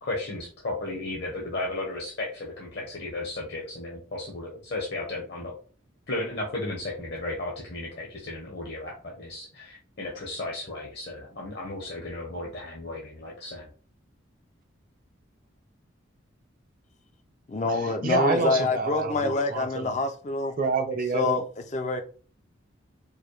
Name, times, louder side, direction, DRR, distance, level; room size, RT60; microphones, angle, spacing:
voice 1, 0.0-5.6 6.1-13.7, left 2 dB, 55° left, 0.9 m, -34 dB
voice 2, 17.5-20.6 21.1-21.4 21.7-22.0, left 3 dB, 35° left, 0.4 m, -26 dB
voice 3, 18.0-20.0 20.6-21.4, right 3 dB, 45° right, 0.6 m, -28 dB
4.8 x 2.2 x 3.1 m
head